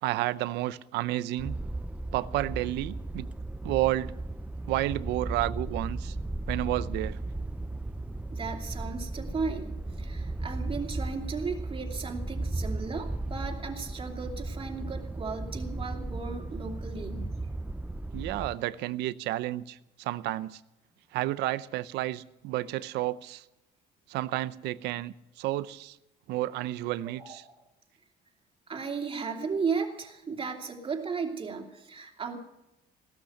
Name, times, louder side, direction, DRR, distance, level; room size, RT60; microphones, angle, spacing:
voice 1, 0.0-1.6 2.1-3.3 3.6-4.1 4.7-6.2 6.5-7.2 18.1-20.6 21.1-23.4 24.1-26.0 26.3-27.4, right 16 dB, 90° right, 0.7 m, -31 dB
sound 1, 1.4-18.5, right 2 dB, 5° right, 0.6 m, -35 dB
voice 2, 8.3-17.3 27.2-27.6 28.7-32.4, right 5 dB, 30° right, 2.8 m, -35 dB
16.5 x 13.0 x 6.6 m
cardioid pair, 110°, 17 cm